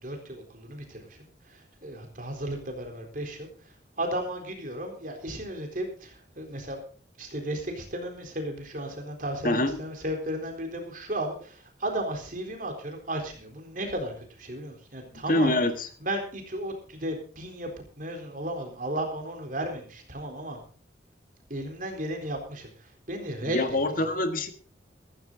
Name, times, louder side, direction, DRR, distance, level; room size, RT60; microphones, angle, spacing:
voice 1, 0.0-6.8 7.2-15.6 16.0-17.7 18.0-20.6 21.5-24.1, right 1 dB, 45° right, 4 dB, 3.9 m, -34 dB
voice 2, 9.4-9.8 15.3-15.9 23.4-24.5, left 1 dB, 50° left, 8 dB, 1.6 m, -25 dB
15.0 x 14.5 x 4.0 m, 0.41 s
head